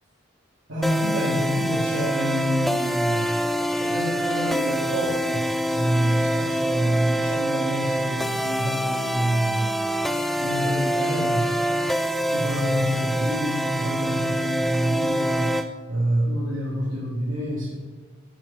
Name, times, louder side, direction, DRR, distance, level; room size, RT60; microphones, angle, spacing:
voice 1, 0.7-3.3 3.6-9.9 10.4-11.5 12.3-17.7, equal, 75° right, -6 dB, 1.8 m, -27 dB
sound 1, 0.8-15.7, equal, ahead, 0.3 m, -25 dB
10.0 x 4.2 x 7.0 m, 1.3 s
head